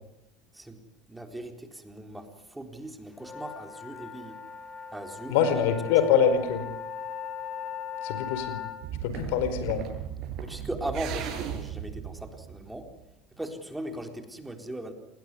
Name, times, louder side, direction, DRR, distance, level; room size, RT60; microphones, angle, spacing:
voice 1, 0.5-4.5 4.9-5.6 6.0-6.1 10.4-12.9 13.4-14.9, right 1 dB, 5° right, 5 dB, 4.1 m, -39 dB
sound 1, 3.1-8.8, left 7 dB, 30° left, 5.5 m, -38 dB
voice 2, 5.3-6.6 8.0-8.6 9.0-9.9, left 7 dB, 80° left, 11 dB, 4.8 m, -24 dB
sound 2, 8.8-13.0, right 9 dB, 55° right, 6.6 m, -36 dB
28.0 x 21.0 x 9.8 m, 0.91 s
supercardioid pair, 110°, 0 cm